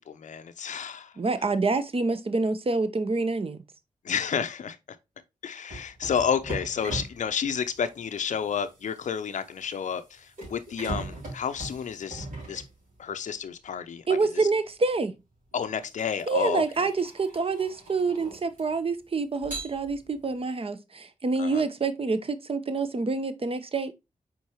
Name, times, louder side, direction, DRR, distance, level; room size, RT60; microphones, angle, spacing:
voice 1, 0.0-1.1 4.0-4.8 5.4-12.6 13.0-14.0 15.5-16.6 21.4-21.6, left 7 dB, 60° left, 0.5 m, -30 dB
voice 2, 1.2-3.6 14.1-15.1 16.3-23.9, right 3 dB, 40° right, 0.8 m, -27 dB
sound 1, 5.7-13.3 14.6-14.8 15.5-18.9 19.4-20.3, right 2 dB, 70° right, 2.7 m, -40 dB
4.6 x 3.8 x 2.9 m
supercardioid pair, 40°, 14 cm